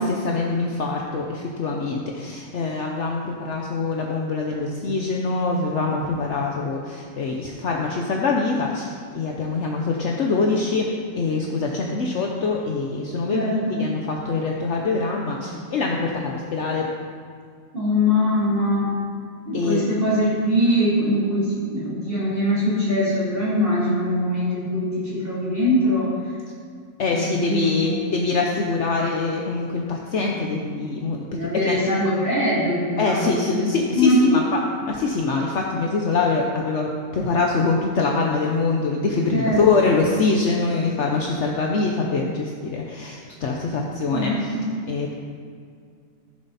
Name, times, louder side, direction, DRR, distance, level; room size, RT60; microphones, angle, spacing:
voice 1, 0.0-10.9 11.2-16.9 19.5-19.8 27.0-31.2 31.6-31.8 33.0-34.4 34.8-44.3 44.9-45.1, left 4 dB, 60° left, 0 dB, 1.1 m, -24 dB
voice 2, 13.3-13.8 17.7-18.9 19.4-26.1 27.1-28.0 31.3-33.6 33.9-34.4 39.3-39.9 44.1-44.6, left 1 dB, 40° right, -10 dB, 3.1 m, -22 dB
14.5 x 7.4 x 4.2 m, 2.1 s
omnidirectional pair, 1.4 m